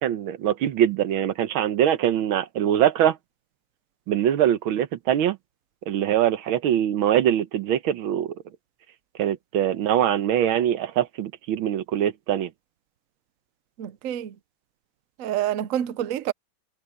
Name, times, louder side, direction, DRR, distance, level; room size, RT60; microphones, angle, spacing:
voice 1, 0.0-3.2 4.1-5.4 5.9-8.3 9.2-12.5, right 10 dB, 85° right, 1.8 m, -23 dB
voice 2, 13.8-14.4 15.2-16.3, right 11 dB, 65° right, 0.8 m, -27 dB
omnidirectional pair, 2.2 m